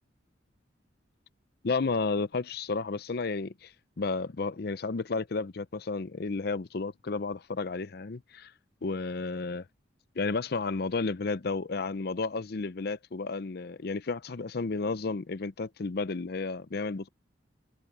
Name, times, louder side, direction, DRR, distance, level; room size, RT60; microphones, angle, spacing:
voice 1, 1.6-3.7 4.0-8.5 8.8-9.6 10.2-17.1, left 4 dB, 55° left, 0.6 m, -32 dB
head